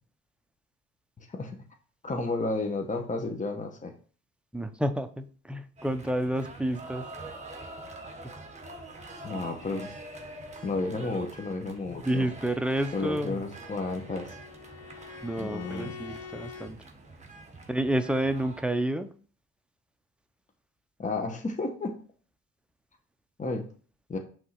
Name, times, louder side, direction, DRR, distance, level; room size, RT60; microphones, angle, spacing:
voice 1, 1.2-1.6 2.0-3.9 9.2-9.9 10.6-12.3 12.9-14.4 15.4-15.9 21.0-22.0 23.4-23.7 24.1-24.2, left 3 dB, 25° left, 4 dB, 1.1 m, -32 dB
voice 2, 4.5-7.1 11.9-13.4 15.2-16.8 17.7-19.1, right 1 dB, 5° right, 8 dB, 0.6 m, -30 dB
sound 1, 5.8-18.6, right 2 dB, 25° right, 1.3 m, -45 dB
Bowed string instrument, 13.2-16.7, left 7 dB, 55° left, 0.9 m, -46 dB
5.7 x 3.6 x 5.8 m, 0.41 s
cardioid pair, 90°, 30 cm